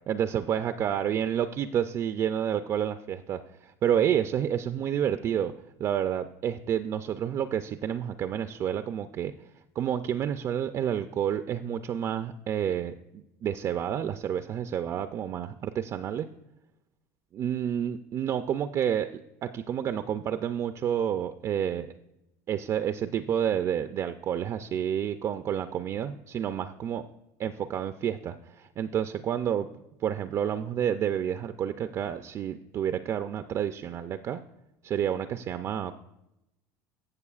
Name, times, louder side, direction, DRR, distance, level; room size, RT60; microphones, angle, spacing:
voice 1, 0.1-5.5 5.8-9.3 9.8-16.3 17.3-21.9 22.5-27.0 27.4-29.7 30.0-34.4 34.8-36.0, right 9 dB, 40° right, 9 dB, 0.4 m, -29 dB
15.5 x 6.8 x 2.4 m, 0.89 s
supercardioid pair, 125°, 8 cm